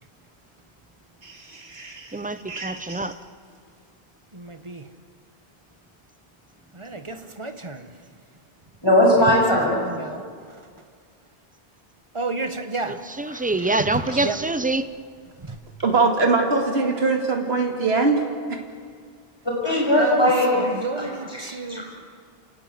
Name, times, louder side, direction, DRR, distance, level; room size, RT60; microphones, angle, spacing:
voice 1, 1.2-2.2 2.5-3.0 15.8-18.6, right 3 dB, 75° right, 2 dB, 2.5 m, -23 dB
voice 2, 2.1-3.2 12.9-14.9, right 2 dB, 10° right, 11 dB, 0.7 m, -25 dB
voice 3, 4.3-4.9 6.7-7.9 9.2-9.4 9.7-10.6 12.1-13.0 14.2-14.4 15.4-15.6 20.0-21.8, right 3 dB, 30° right, 8 dB, 1.4 m, -31 dB
voice 4, 8.8-9.8 13.6-13.7 19.6-21.4 21.7-21.8, left 1 dB, 25° left, -3 dB, 6.4 m, -19 dB
29.0 x 18.0 x 7.7 m, 2.1 s
omnidirectional pair, 1.1 m